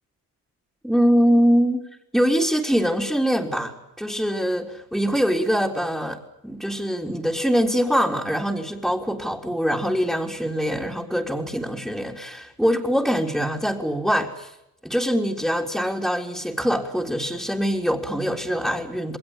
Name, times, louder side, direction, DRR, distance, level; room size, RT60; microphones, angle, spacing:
voice 1, 0.8-1.8 2.1-14.5 14.8-19.2, equal, ahead, -2 dB, 3.7 m, -23 dB
28.5 x 21.5 x 8.9 m, 0.82 s
cardioid pair, 90°, 35 cm